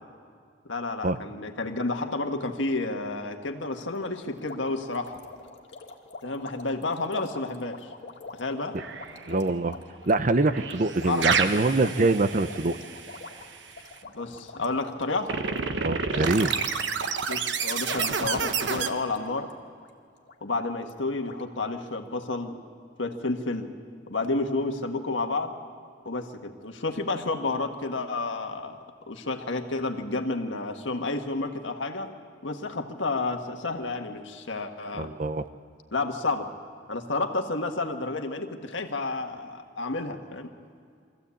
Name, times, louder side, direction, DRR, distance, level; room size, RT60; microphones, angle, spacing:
voice 1, 0.6-5.2 6.2-7.9 8.3-8.8 11.1-11.7 14.1-15.3 17.3-19.5 20.4-22.6 23.0-23.7 24.1-25.5 26.0-28.8 29.1-32.1 32.4-35.1 35.9-36.5 36.9-40.5, left 3 dB, 85° left, 5 dB, 1.6 m, -30 dB
sound 1, 3.6-16.4 16.6-17.1 17.6-19.5 19.8-19.9 20.3-20.4 20.9-21.0 21.2-21.4, left 3 dB, 70° left, 2.0 m, -45 dB
sound 2, 8.8-9.4 10.4-13.6 15.3-18.9, right 5 dB, 75° right, 1.1 m, -29 dB
voice 2, 9.3-9.8 10.1-12.8 15.8-16.5 35.0-35.4, right 2 dB, 45° right, 12 dB, 0.7 m, -24 dB
24.0 x 15.0 x 8.5 m, 2.2 s
head